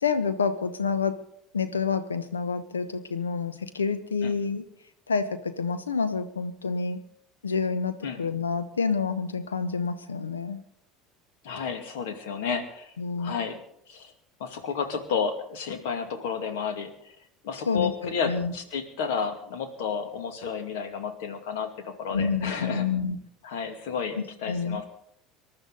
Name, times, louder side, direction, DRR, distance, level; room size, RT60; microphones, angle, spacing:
voice 1, 0.0-1.2 1.5-4.6 5.1-7.0 7.4-10.6 13.0-13.4 17.7-17.9 18.3-18.5 22.1-23.2 24.5-24.8, left 5 dB, 80° left, 11 dB, 1.1 m, -28 dB
voice 2, 11.4-12.9 13.2-13.6 13.9-14.1 14.4-17.1 17.4-22.8 23.4-24.9, left 6 dB, 65° left, 7 dB, 2.3 m, -31 dB
26.0 x 12.0 x 4.0 m, 0.72 s
figure-of-eight pair, 65°, 0 cm